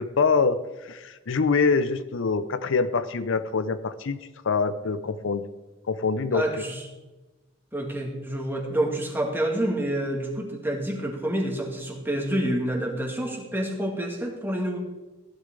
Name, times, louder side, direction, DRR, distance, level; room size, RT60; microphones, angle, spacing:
voice 1, 0.0-5.5 5.9-6.6, left 4 dB, 65° left, 12 dB, 0.6 m, -25 dB
voice 2, 6.3-6.8 7.7-14.8, right 1 dB, 10° right, 0 dB, 2.1 m, -28 dB
15.5 x 11.5 x 3.8 m, 1.1 s
head